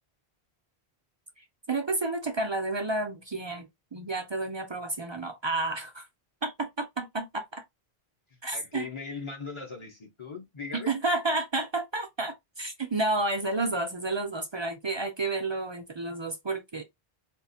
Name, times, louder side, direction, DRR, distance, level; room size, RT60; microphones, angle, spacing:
voice 1, 1.7-6.1 6.4-7.6 8.4-8.9 10.7-16.8, right 2 dB, 40° right, 0.4 m, -31 dB
voice 2, 8.5-11.0, left 5 dB, 30° left, 0.8 m, -39 dB
3.7 x 2.5 x 2.6 m
omnidirectional pair, 1.0 m